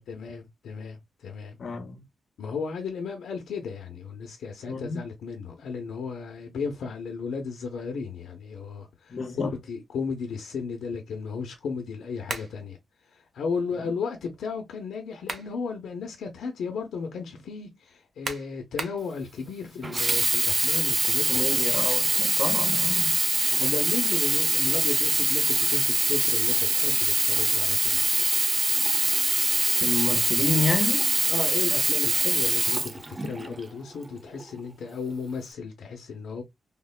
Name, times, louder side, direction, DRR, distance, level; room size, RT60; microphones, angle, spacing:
voice 1, 0.1-1.6 2.4-12.8 13.1-21.4 23.6-28.0 31.3-36.4, left 5 dB, 90° left, 0.6 m, -34 dB
voice 2, 1.6-2.0 4.7-5.0 9.1-9.5 13.8-13.9 21.3-23.2 29.8-31.0, left 4 dB, 50° left, 0.7 m, -29 dB
sound 1, 12.3-12.6 14.9-15.6 16.1-16.2 18.2-19.1, right 4 dB, 50° right, 0.7 m, -35 dB
Sink (filling or washing), 19.8-33.6 34.3-34.4, right 2 dB, 20° right, 0.3 m, -24 dB
3.5 x 2.1 x 2.2 m
wide cardioid pair, 120°, 0 cm